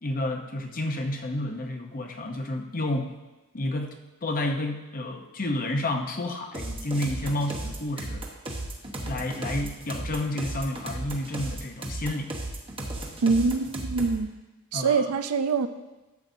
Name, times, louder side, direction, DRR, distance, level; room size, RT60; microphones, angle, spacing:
voice 1, 0.0-3.1 3.5-3.9 4.2-8.2 8.8-12.3 14.7-15.1, left 1 dB, 40° left, 4 dB, 0.8 m, -30 dB
sound 1, 6.5-14.2, right 1 dB, 25° right, 1.0 m, -35 dB
voice 2, 13.2-14.4 14.7-15.7, right 4 dB, 80° right, 10 dB, 0.5 m, -24 dB
12.0 x 7.6 x 2.7 m, 1.1 s
head